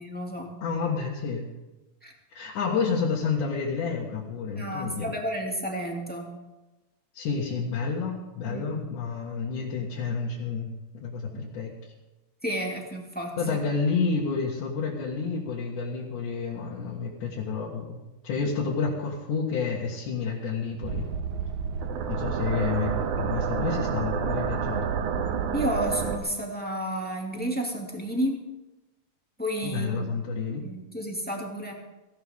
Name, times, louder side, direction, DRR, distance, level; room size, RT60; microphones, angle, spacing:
voice 1, 0.0-0.5 2.0-2.1 4.6-6.4 8.5-8.7 11.3-11.4 12.4-13.6 25.5-28.4 29.4-30.1 30.6-31.7, right 1 dB, 5° left, -1 dB, 1.9 m, -31 dB
voice 2, 0.6-1.5 2.3-5.1 7.1-11.7 13.4-18.0 18.2-21.1 22.1-24.8 29.6-30.6, left 5 dB, 80° left, -4 dB, 3.3 m, -30 dB
sound 1, 20.8-26.2, right 6 dB, 80° right, 2.5 m, -29 dB
18.0 x 16.5 x 3.7 m, 1.1 s
omnidirectional pair, 3.5 m